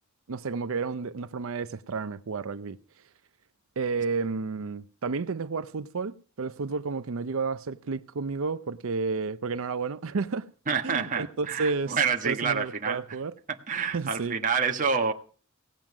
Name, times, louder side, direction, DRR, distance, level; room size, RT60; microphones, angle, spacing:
voice 1, 0.3-2.8 3.8-10.5 10.8-12.0 12.2-13.3 13.9-14.4, right 4 dB, 65° right, 0.6 m, -31 dB
voice 2, 10.7-13.0 13.7-15.1, right 5 dB, 40° right, 1.4 m, -27 dB
17.0 x 9.0 x 6.1 m
head